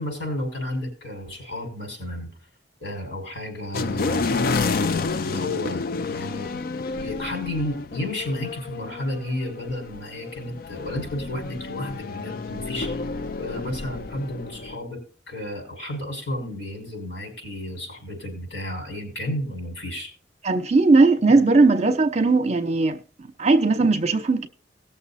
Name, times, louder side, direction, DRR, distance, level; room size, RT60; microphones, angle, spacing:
voice 1, 0.0-2.3 2.8-4.3 5.2-6.6 6.9-12.9 13.4-15.0 15.3-20.1, left 1 dB, 75° left, 5.7 m, -32 dB
sound 1, 3.7-14.8, left 4 dB, 55° left, 0.4 m, -30 dB
voice 2, 20.4-24.5, right 3 dB, 35° right, 0.9 m, -18 dB
18.5 x 6.7 x 4.2 m
head